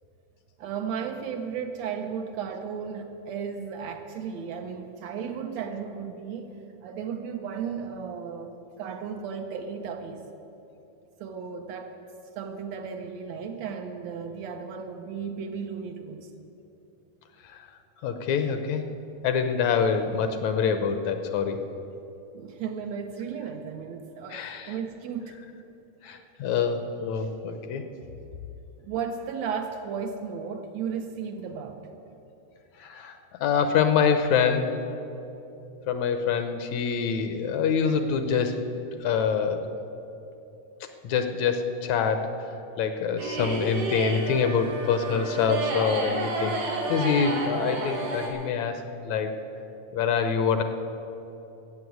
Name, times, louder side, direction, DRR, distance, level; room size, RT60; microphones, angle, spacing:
voice 1, 0.6-6.6 6.8-10.2 11.2-11.9 12.4-16.3 22.3-25.4 28.8-31.8, right 6 dB, 70° right, 5 dB, 1.8 m, -34 dB
voice 2, 18.0-18.8 19.2-21.6 24.3-24.7 26.0-27.8 32.8-33.2 33.4-34.8 35.9-38.6 39.0-39.6 41.0-42.3 42.8-46.5 46.9-49.4 49.9-50.6, left 6 dB, 75° left, 8 dB, 1.8 m, -25 dB
sound 1, 43.2-48.3, right 3 dB, 90° right, 3.6 m, -31 dB
14.5 x 7.6 x 9.3 m, 2.9 s
omnidirectional pair, 3.5 m